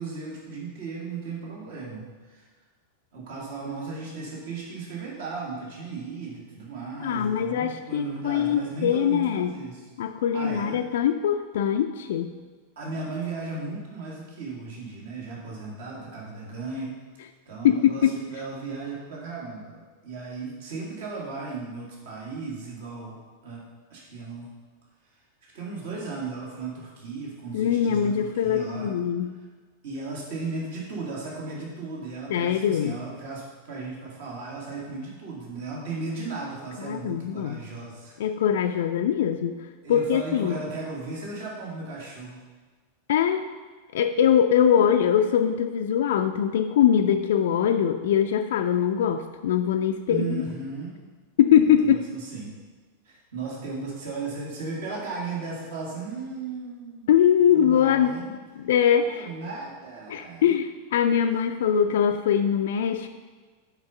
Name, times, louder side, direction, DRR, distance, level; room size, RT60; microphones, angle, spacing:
voice 1, 0.0-2.5 3.1-9.9 10.3-10.8 12.8-16.9 17.5-23.2 23.4-23.6 23.9-24.5 25.5-28.9 29.4-29.5 29.8-38.2 39.8-42.4 50.1-51.0 51.6-52.5 53.0-57.1 57.4-58.3 59.0-60.5 61.3-61.4, right 4 dB, 55° right, -3 dB, 1.7 m, -36 dB
voice 2, 7.0-9.5 10.0-12.3 17.6-18.1 27.5-29.4 32.3-32.9 36.8-37.6 38.2-39.6 39.9-40.6 43.1-43.4 43.9-50.4 51.4-52.0 57.1-59.3 60.1-63.1, left 9 dB, 55° left, 6 dB, 0.3 m, -22 dB
6.0 x 5.2 x 5.5 m, 1.4 s
figure-of-eight pair, 90°, 0 cm